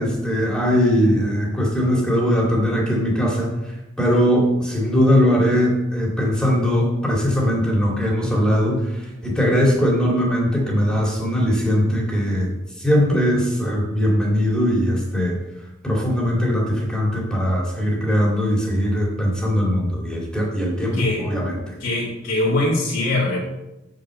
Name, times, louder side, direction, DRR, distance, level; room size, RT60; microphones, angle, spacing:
voice 1, 0.0-3.5 4.0-12.5 12.8-15.4 15.8-21.7, equal, 5° left, -3 dB, 2.3 m, -20 dB
voice 2, 20.9-21.3 21.8-23.4, left 2 dB, 70° left, -8 dB, 2.4 m, -22 dB
6.7 x 6.6 x 7.5 m, 0.95 s
head